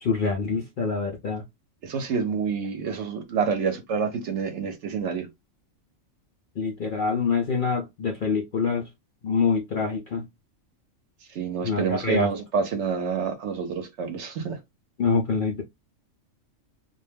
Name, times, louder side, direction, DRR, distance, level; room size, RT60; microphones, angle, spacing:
voice 1, 0.0-1.4 6.6-8.8 9.2-10.3 11.6-12.3 15.0-15.6, left 4 dB, 60° left, 0.5 m, -25 dB
voice 2, 1.8-5.3 11.3-14.6, right 6 dB, 65° right, 0.9 m, -28 dB
2.4 x 2.1 x 3.3 m
omnidirectional pair, 1.4 m